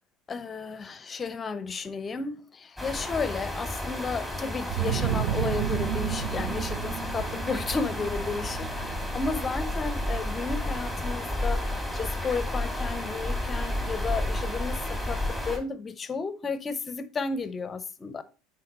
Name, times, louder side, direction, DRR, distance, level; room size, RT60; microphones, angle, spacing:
voice 1, 0.3-18.2, left 4 dB, 30° left, 0.8 m, -33 dB
sound 1, 2.8-15.6, left 1 dB, 5° right, 2.5 m, -32 dB
sound 2, 4.7-10.2, right 10 dB, 65° right, 0.6 m, -32 dB
9.2 x 4.7 x 3.1 m
hypercardioid pair, 75°, 0 cm